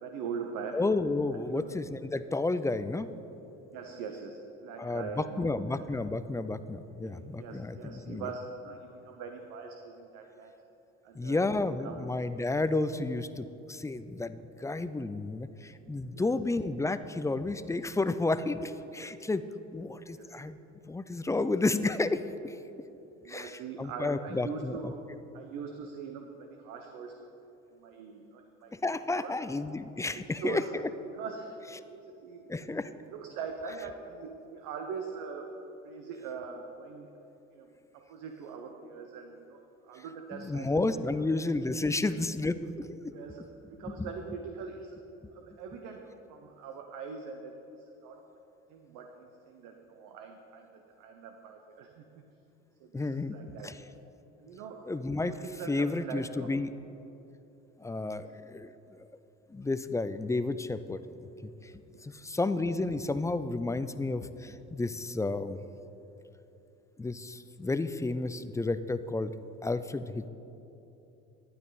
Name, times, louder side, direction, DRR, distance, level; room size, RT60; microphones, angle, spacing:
voice 1, 0.0-0.8 1.3-1.7 3.7-5.8 7.0-10.5 11.0-12.2 16.1-16.2 20.2-20.4 23.2-25.0 25.3-27.2 27.7-28.7 29.2-29.5 30.3-30.7 31.1-31.6 31.9-32.8 33.1-35.5 35.8-37.1 37.5-37.7 38.1-41.0 43.1-45.0 45.3-48.3 48.7-52.2 52.8-53.7 54.4-54.9 55.2-56.5 58.1-58.2 61.9-62.0, right 5 dB, 70° right, 4 dB, 0.9 m, -42 dB
voice 2, 0.7-3.1 4.8-8.3 11.1-19.4 19.7-20.6 20.8-22.6 23.3-24.9 28.7-30.9 32.5-32.9 40.0-40.1 40.3-43.1 44.0-44.1 52.9-53.4 53.6-53.8 54.9-55.3 55.7-56.7 57.8-58.7 59.0-59.1 59.5-61.0 61.4-61.7 62.0-65.6 67.0-69.3 69.6-70.3, left 2 dB, 10° left, 12 dB, 0.4 m, -31 dB
12.0 x 9.6 x 4.0 m, 3.0 s
supercardioid pair, 75°, 32 cm